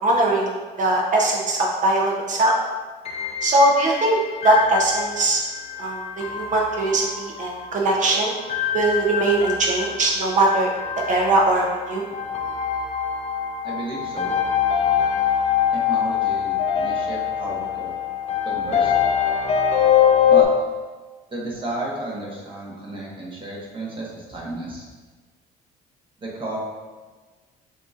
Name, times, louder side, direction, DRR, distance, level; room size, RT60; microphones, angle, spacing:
voice 1, 0.0-2.6 3.4-4.2 4.4-5.4 5.8-8.3 8.7-10.7 11.1-12.0, right 2 dB, 45° right, -1 dB, 0.7 m, -20 dB
sound 1, 3.1-20.4, left 8 dB, 40° left, 0.5 m, -24 dB
voice 2, 13.6-14.3 15.7-17.9 18.4-19.0 20.2-20.5 21.3-24.8 26.2-26.6, right 2 dB, 30° right, -3 dB, 1.2 m, -32 dB
6.5 x 2.7 x 2.4 m, 1.3 s
cardioid pair, 110°, 17 cm